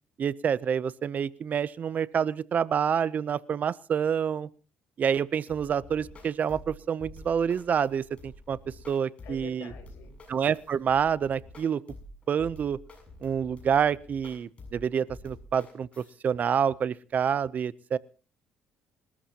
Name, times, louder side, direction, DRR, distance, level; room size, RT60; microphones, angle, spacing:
voice 1, 0.2-4.5 5.0-9.7 10.3-11.8 12.3-12.8 13.2-18.0, right 7 dB, 45° right, 19 dB, 0.6 m, -28 dB
sound 1, 5.5-16.1, left 1 dB, 30° left, 7.3 m, -48 dB
voice 2, 9.2-10.1, left 7 dB, 75° left, 6 dB, 6.0 m, -45 dB
28.5 x 13.5 x 2.9 m, 0.38 s
cardioid pair, 110°, 4 cm